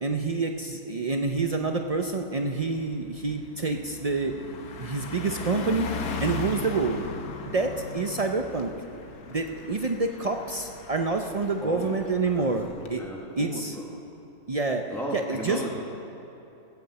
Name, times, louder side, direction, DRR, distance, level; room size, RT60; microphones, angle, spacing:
voice 1, 0.0-4.4 4.8-5.9 6.2-7.0 7.5-8.7 9.3-13.0 13.4-13.8 14.5-14.8 15.1-15.7, right 3 dB, 70° right, 4 dB, 0.3 m, -27 dB
Car passing by, 1.3-1.6 2.0-12.9, left 4 dB, 90° left, 1.5 m, -38 dB
voice 2, 11.6-12.0 12.3-12.4 13.0-13.9 14.9-15.8, equal, ahead, -2 dB, 1.3 m, -35 dB
18.5 x 7.1 x 7.9 m, 2.9 s
omnidirectional pair, 1.6 m